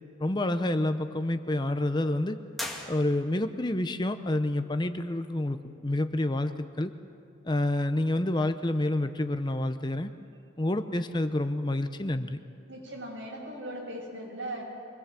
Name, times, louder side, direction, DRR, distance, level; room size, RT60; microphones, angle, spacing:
voice 1, 0.2-2.4 2.9-6.9 7.4-10.1 10.6-12.4, left 1 dB, 25° left, 9 dB, 0.7 m, -28 dB
sound 1, 2.5-3.6, left 1 dB, ahead, 2.2 m, -39 dB
voice 2, 12.7-14.6, right 1 dB, 75° right, -1 dB, 7.1 m, -38 dB
25.0 x 20.5 x 7.6 m, 2.5 s
head